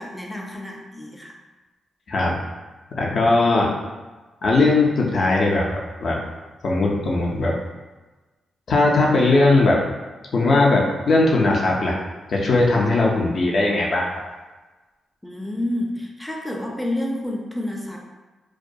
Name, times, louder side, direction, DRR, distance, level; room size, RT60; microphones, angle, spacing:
voice 1, 0.0-1.3 15.2-18.0, left 1 dB, 5° left, 0 dB, 0.4 m, -29 dB
voice 2, 2.1-2.4 2.9-3.7 4.4-6.2 6.6-7.6 8.7-9.8 10.3-12.0 12.3-14.2, left 2 dB, 60° left, -2 dB, 0.4 m, -19 dB
2.3 x 2.2 x 2.6 m, 1.2 s
cardioid pair, 60°, 0 cm